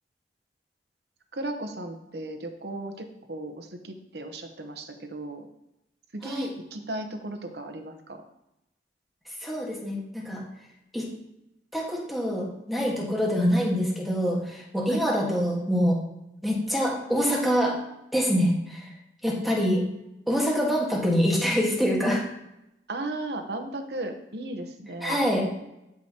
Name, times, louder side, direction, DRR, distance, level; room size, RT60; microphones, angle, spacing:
voice 1, 1.3-5.5 6.1-8.2 14.9-15.0 22.9-25.3, right 1 dB, 65° right, 5 dB, 0.9 m, -35 dB
voice 2, 9.4-10.4 10.9-11.1 11.7-16.0 16.4-17.8 18.1-18.8 19.2-19.8 20.3-22.2 25.0-25.4, equal, ahead, -3 dB, 1.5 m, -25 dB
12.5 x 4.8 x 2.9 m, 0.88 s
head